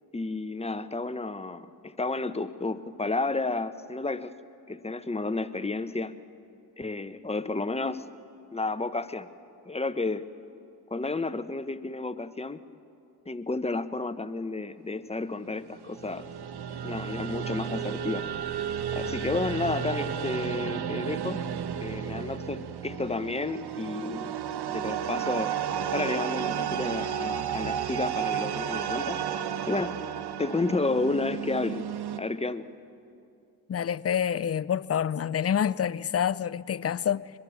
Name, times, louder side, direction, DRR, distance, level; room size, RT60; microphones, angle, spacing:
voice 1, 0.1-4.3 4.7-6.1 6.8-8.0 8.5-9.3 9.7-10.2 10.9-12.6 13.3-16.2 16.8-18.3 18.9-21.4 21.8-24.3 24.7-25.6 25.9-29.2 29.7-30.0 30.4-31.9 32.1-32.6, left 3 dB, 15° left, 1.0 m, -31 dB
sound 1, 15.7-32.2, right 8 dB, 70° right, 1.2 m, -32 dB
voice 2, 33.7-37.3, left 8 dB, 35° left, 0.6 m, -27 dB
23.0 x 21.5 x 7.2 m
supercardioid pair, 55°, 41 cm